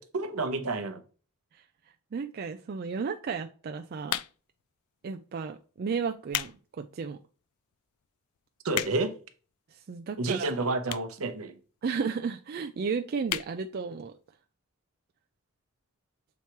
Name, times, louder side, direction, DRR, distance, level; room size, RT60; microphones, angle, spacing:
voice 1, 0.1-1.0 8.6-9.2 10.2-11.6, right 3 dB, 70° right, 0.8 m, -30 dB
voice 2, 2.1-4.2 5.0-7.2 9.7-10.6 11.8-14.1, right 5 dB, 45° right, 0.3 m, -33 dB
sound 1, 4.0-4.6 5.3-5.5 6.0-6.6 7.0-7.1 7.7-7.8 8.0-8.1 8.4-9.2 10.0-10.1 10.8-11.2 11.5-11.6 11.8-11.9 12.1-12.2 12.5-12.8 13.2-13.5 13.9-14.0 14.2-14.3, left 13 dB, 80° left, 0.3 m, -33 dB
7.1 x 3.0 x 4.5 m
head